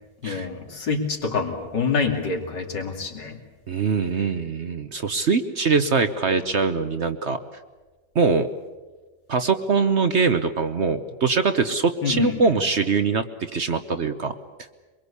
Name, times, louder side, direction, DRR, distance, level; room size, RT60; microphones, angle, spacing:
voice 1, 0.2-3.4 12.0-12.5, left 5 dB, 80° left, 3 dB, 3.3 m, -26 dB
voice 2, 3.7-7.4 8.1-8.5 9.3-13.2 13.5-14.3, right 4 dB, 45° right, 9 dB, 1.0 m, -22 dB
23.5 x 22.5 x 8.4 m, 1.3 s
omnidirectional pair, 1.8 m